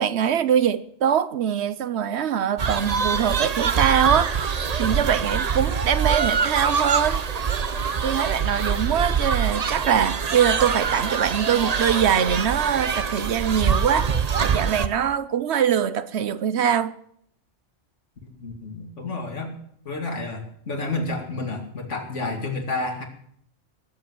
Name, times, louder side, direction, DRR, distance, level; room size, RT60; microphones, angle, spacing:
voice 1, 0.0-7.2 8.0-16.9, right 8 dB, 65° right, 1.0 m, -23 dB
sound 1, 2.6-14.9, right 6 dB, 40° right, 0.7 m, -24 dB
voice 2, 18.2-19.5 19.8-23.0, left 3 dB, 75° left, 2.7 m, -30 dB
18.5 x 7.9 x 7.7 m
omnidirectional pair, 1.2 m